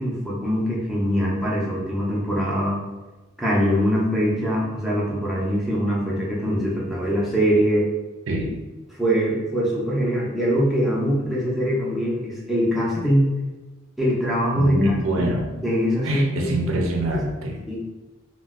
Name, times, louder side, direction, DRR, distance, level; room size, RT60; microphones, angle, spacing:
voice 1, 0.0-2.8 3.4-7.9 9.0-13.3 14.0-15.3 15.6-16.5 17.1-17.2 17.7-17.8, equal, ahead, -6 dB, 0.5 m, -23 dB
voice 2, 8.3-8.6 14.5-15.5 16.0-17.6, right 1 dB, 75° right, 1 dB, 0.5 m, -25 dB
2.5 x 2.1 x 3.5 m, 1.2 s
head